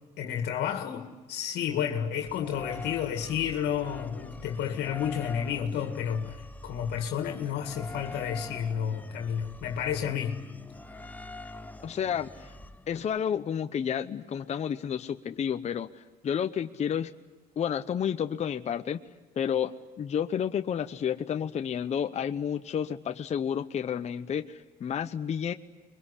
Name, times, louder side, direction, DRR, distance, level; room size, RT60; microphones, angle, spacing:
voice 1, 0.2-10.4, left 8 dB, 75° left, 2.2 m, -31 dB
sound 1, 2.3-13.2, left 2 dB, 10° left, 1.0 m, -45 dB
voice 2, 11.8-12.5 12.9-17.1 17.6-19.0 19.4-25.5, left 8 dB, 40° left, 0.9 m, -31 dB
25.5 x 22.5 x 10.0 m
cardioid pair, 110°, 17 cm